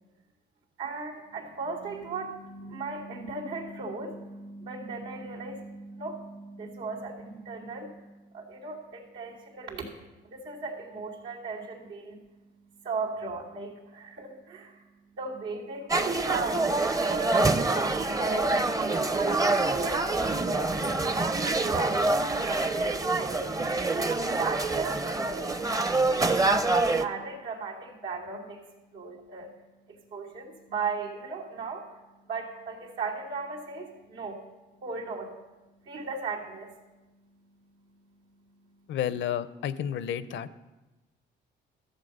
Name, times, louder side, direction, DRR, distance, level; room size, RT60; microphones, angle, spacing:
voice 1, 0.8-9.9 10.2-12.2 12.6-14.9 15.2-22.0 22.4-23.5 24.2-28.6 28.9-29.5 29.9-34.4 34.8-35.3 35.8-36.8, right 4 dB, 90° right, -5 dB, 3.0 m, -37 dB
sound 1, 15.9-27.0, right 2 dB, 15° right, 0.6 m, -26 dB
voice 2, 38.9-40.5, left 9 dB, 70° left, 15 dB, 0.6 m, -31 dB
14.5 x 7.4 x 5.4 m, 1.1 s
cardioid pair, 90°, 20 cm